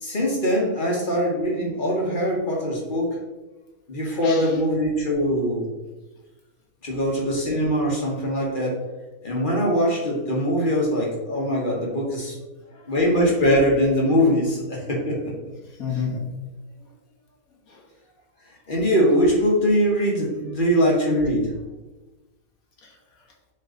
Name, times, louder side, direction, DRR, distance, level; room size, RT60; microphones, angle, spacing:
voice 1, 0.0-3.2 3.9-5.7 6.8-8.8 9.2-12.4 12.9-15.4 18.7-21.5, equal, 35° left, -2 dB, 1.4 m, -22 dB
voice 2, 4.2-4.6 12.6-12.9 15.6-16.3 16.8-16.9 17.7-17.9 22.8-23.3, left 5 dB, 70° left, -2 dB, 1.8 m, -33 dB
7.6 x 3.2 x 3.9 m, 1.1 s
omnidirectional pair, 1.6 m